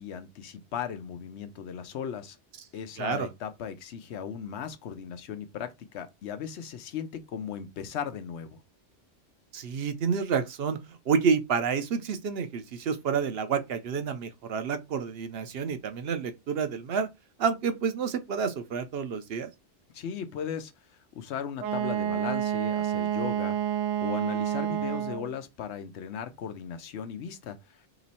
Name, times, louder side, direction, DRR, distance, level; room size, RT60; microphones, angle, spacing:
voice 1, 0.0-2.4 2.7-8.6 19.9-20.7 21.2-23.6 24.0-27.8, left 8 dB, 75° left, 0.9 m, -37 dB
voice 2, 3.0-3.3 9.5-17.1 17.4-19.5, right 6 dB, 65° right, 0.8 m, -29 dB
Wind instrument woodwind instrument, 21.6-25.3, right 11 dB, 85° right, 0.9 m, -29 dB
3.1 x 2.9 x 4.1 m
omnidirectional pair, 1.2 m